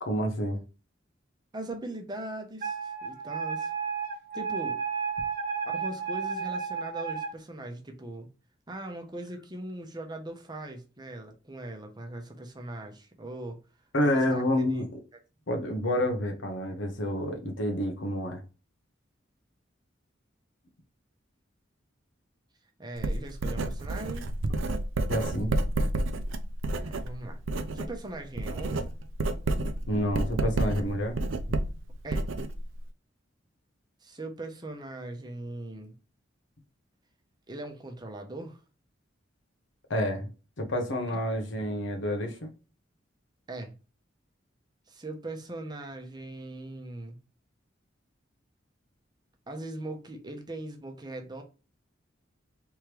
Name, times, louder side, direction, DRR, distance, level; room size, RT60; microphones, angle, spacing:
voice 1, 0.0-0.6 13.9-14.9 15.5-18.4 25.1-25.5 29.9-31.2 39.9-40.3 40.6-42.5, equal, 75° left, 1.0 m, -28 dB
voice 2, 1.5-3.7 4.3-4.8 5.6-8.3 8.7-13.6 14.0-14.4 14.7-14.8 22.8-24.3 26.7-27.4 27.7-28.9 32.0-32.3 34.0-35.9 37.5-38.6 41.1-41.2 43.5-43.7 44.9-47.2 49.5-51.4, right 1 dB, 20° right, 0.7 m, -40 dB
Wind instrument woodwind instrument, 2.6-7.3, right 6 dB, 45° right, 1.1 m, -32 dB
Writing, 23.0-27.9 28.2-32.9, right 2 dB, 80° right, 0.5 m, -30 dB
3.5 x 3.2 x 3.0 m
head